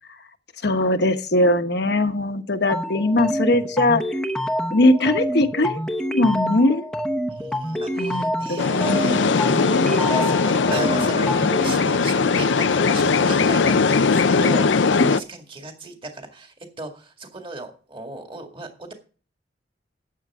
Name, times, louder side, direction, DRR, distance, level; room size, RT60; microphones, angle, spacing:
voice 1, 0.6-4.0 4.7-5.8 6.1-6.9 8.0-9.4 11.4-11.5, left 1 dB, 60° left, 8 dB, 1.2 m, -20 dB
sound 1, 2.7-11.7, equal, 5° left, 0.8 m, -27 dB
voice 2, 7.3-18.9, right 3 dB, 30° right, 3 dB, 2.1 m, -37 dB
sound 2, 8.6-15.2, left 4 dB, 85° left, 0.6 m, -19 dB
13.5 x 8.9 x 3.7 m, 0.38 s
head